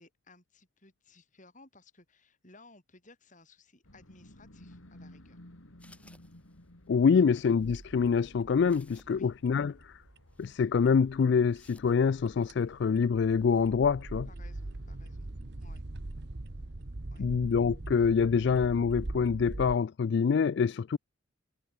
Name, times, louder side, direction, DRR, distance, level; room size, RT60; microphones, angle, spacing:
voice 1, 0.0-5.4 7.1-7.3 9.1-9.3 14.3-15.3 15.6-15.8 17.1-17.3, left 2 dB, 35° left, 6.6 m, -58 dB
sound 1, 3.8-15.2, left 1 dB, 80° left, 3.6 m, -57 dB
sound 2, 5.8-6.9 7.5-7.8 8.4-8.5 8.7-9.3 9.6-9.7 10.3-10.6 11.5-12.6 13.4-13.7, left 2 dB, 5° left, 4.0 m, -61 dB
voice 2, 6.9-10.0 10.4-14.3 17.2-21.0, left 6 dB, 55° left, 0.3 m, -26 dB
sound 3, 7.6-19.8, right 2 dB, 55° right, 1.1 m, -42 dB
head